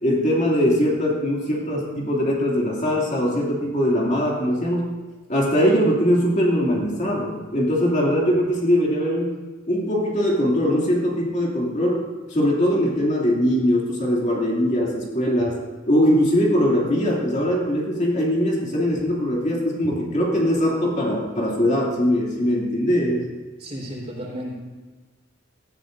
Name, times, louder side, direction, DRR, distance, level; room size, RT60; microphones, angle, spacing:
voice 1, 0.0-4.9 5.3-9.3 9.7-12.0 12.3-15.6 15.9-23.3, equal, 35° left, -3 dB, 2.5 m, -21 dB
voice 2, 23.6-24.5, equal, 30° right, -3 dB, 3.9 m, -33 dB
19.0 x 14.5 x 2.6 m, 1.3 s
head